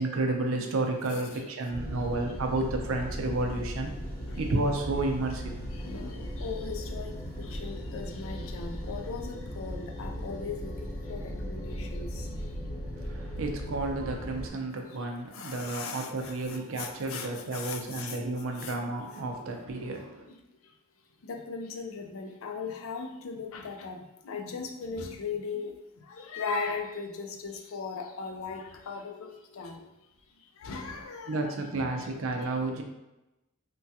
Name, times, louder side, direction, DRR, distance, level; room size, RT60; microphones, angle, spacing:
voice 1, 0.0-3.9 4.4-5.6 13.0-20.3 30.9-32.8, right 2 dB, 70° right, 3 dB, 0.5 m, -31 dB
sound 1, 1.7-14.5, equal, 15° left, 0.8 m, -37 dB
voice 2, 5.8-7.1 7.5-10.7 11.1-12.1 15.4-16.3 16.8-17.3 17.5-18.1 18.6-18.7 21.3-24.0 24.3-25.7 26.2-29.8 30.6-31.5 31.8-32.1 32.4-32.5, left 5 dB, 70° left, 4 dB, 0.4 m, -38 dB
3.3 x 2.2 x 2.7 m, 0.96 s
head